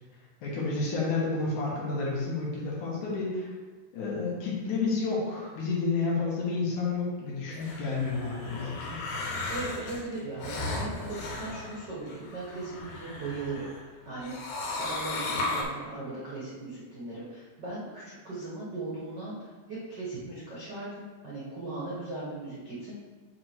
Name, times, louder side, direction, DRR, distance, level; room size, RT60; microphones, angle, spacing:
voice 1, 0.4-3.5 3.9-9.0, left 3 dB, 65° left, -5 dB, 2.5 m, -30 dB
sound 1, 7.5-13.8 14.2-15.6, left 2 dB, 85° left, 2.9 m, -36 dB
voice 2, 9.5-13.6 14.0-22.9, right 2 dB, 85° right, -8 dB, 0.9 m, -38 dB
7.7 x 3.5 x 4.6 m, 1.4 s
omnidirectional pair, 4.4 m